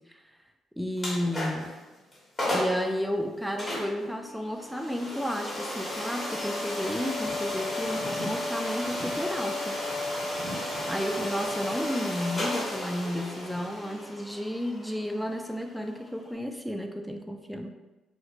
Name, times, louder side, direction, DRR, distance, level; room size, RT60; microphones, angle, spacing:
voice 1, 0.8-1.7 2.5-9.8 10.9-17.7, equal, ahead, 4 dB, 0.4 m, -32 dB
sound 1, 1.0-1.7 2.1-2.2 2.4-2.8 3.6-16.3, left 1 dB, 35° left, 1.2 m, -33 dB
4.2 x 2.1 x 2.4 m, 1.1 s
cardioid pair, 90°, 0 cm